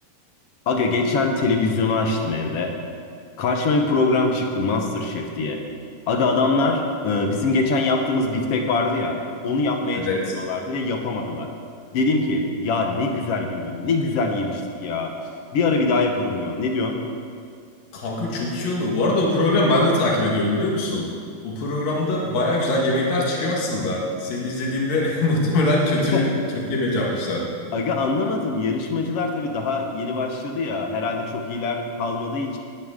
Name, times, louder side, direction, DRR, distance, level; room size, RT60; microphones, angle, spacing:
voice 1, 0.7-2.7 3.4-5.6 6.1-9.2 9.4-10.1 10.3-11.5 11.9-15.1 15.5-17.0 26.1-26.3 27.7-32.6, left 3 dB, 65° left, 3 dB, 1.6 m, -23 dB
voice 2, 9.9-10.3 17.9-21.1 21.4-26.3 26.7-27.4, left 2 dB, 85° left, -2 dB, 3.4 m, -22 dB
19.0 x 9.7 x 3.7 m, 2.3 s
omnidirectional pair, 3.9 m